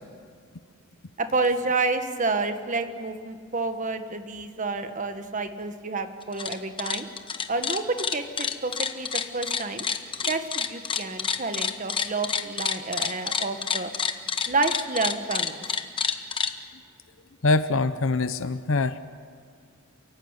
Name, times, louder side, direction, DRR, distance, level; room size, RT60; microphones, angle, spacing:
voice 1, 1.2-7.1 7.5-9.8 10.3-13.9 14.5-15.9, right 3 dB, 40° right, 8 dB, 1.6 m, -29 dB
sound 1, 6.2-6.5 6.8-16.5, left 6 dB, 25° left, 1.1 m, -28 dB
voice 2, 17.4-19.0, left 3 dB, 75° left, 11 dB, 0.8 m, -24 dB
28.5 x 16.0 x 9.8 m, 2.2 s
head